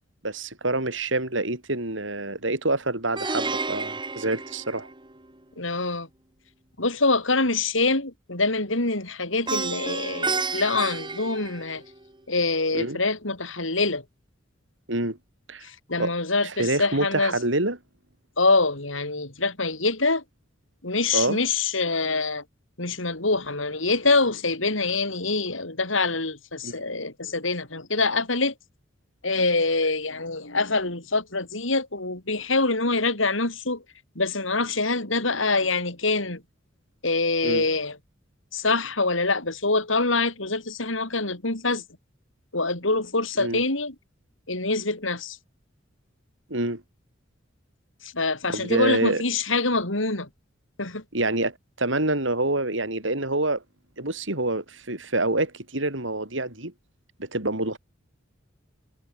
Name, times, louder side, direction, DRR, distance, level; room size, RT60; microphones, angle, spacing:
voice 1, 0.2-4.9 12.7-13.0 14.9-15.2 15.5-15.6 16.0-16.1 16.4-17.8 21.1-21.4 26.6-26.8 37.4-37.7 43.4-43.6 46.5-46.8 48.5-49.2 51.1-53.6 54.0-56.7 57.2-57.8, right 2 dB, 75° right, 7.3 m, -26 dB
Plucked string instrument, 3.2-5.3 9.5-12.1, right 4 dB, 25° right, 2.4 m, -31 dB
voice 2, 5.6-6.1 6.8-11.8 12.3-14.0 15.6-17.4 18.4-20.2 20.8-22.4 22.8-28.5 29.2-33.8 34.2-36.4 37.0-38.0 38.5-41.8 42.5-43.9 44.5-45.4 48.0-50.3 50.8-51.0, left 3 dB, 85° left, 6.1 m, -25 dB
head